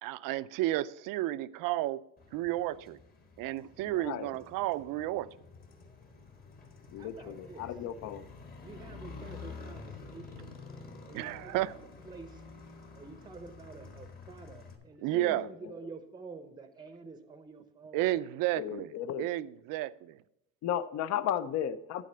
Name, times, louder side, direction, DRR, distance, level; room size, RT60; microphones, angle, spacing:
voice 1, 0.0-2.0 2.3-3.0 3.4-5.3 11.1-11.7 15.0-15.5 17.9-18.9 19.2-20.2, right 16 dB, 75° right, 16 dB, 0.5 m, -32 dB
Motorcycle, 2.2-14.8, left 4 dB, 25° left, 1.2 m, -49 dB
voice 2, 3.8-4.3 6.9-8.2 15.1-15.5 18.6-19.3 20.6-22.0, left 10 dB, 55° left, 13 dB, 0.6 m, -35 dB
voice 3, 7.0-7.7 8.6-10.5 11.1-12.4 12.9-18.0, right 4 dB, 15° right, 9 dB, 0.7 m, -49 dB
12.0 x 4.2 x 6.7 m, 0.83 s
cardioid pair, 155°, 33 cm